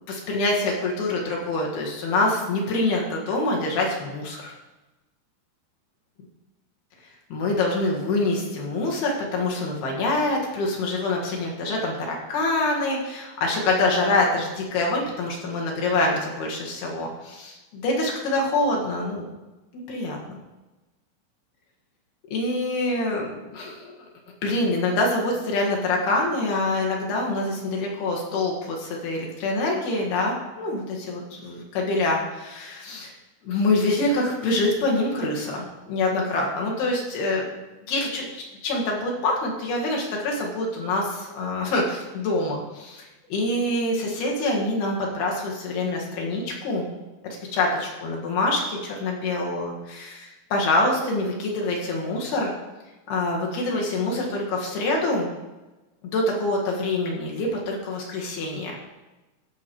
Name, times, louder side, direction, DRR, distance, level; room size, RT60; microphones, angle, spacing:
voice 1, 0.1-4.5 7.3-19.2 19.7-20.2 22.3-24.1 24.4-33.1 33.4-37.5 37.9-46.9 47.2-50.3 50.5-52.5 53.1-55.3 56.0-58.7, left 2 dB, 60° left, -1 dB, 3.1 m, -25 dB
15.5 x 6.2 x 4.6 m, 1.1 s
omnidirectional pair, 5.8 m